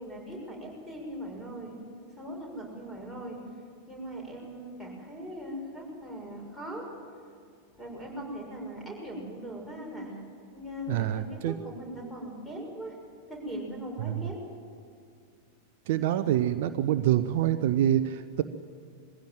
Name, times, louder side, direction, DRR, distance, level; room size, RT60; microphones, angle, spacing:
voice 1, 0.0-1.7 2.1-3.4 3.9-6.9 7.8-10.1 10.5-12.9 13.3-14.4, equal, 5° left, -1 dB, 6.4 m, -40 dB
voice 2, 10.9-11.5 14.0-14.2 15.9-18.4, right 11 dB, 50° right, 11 dB, 0.6 m, -26 dB
22.0 x 16.0 x 9.2 m, 2.3 s
figure-of-eight pair, 90°, 0 cm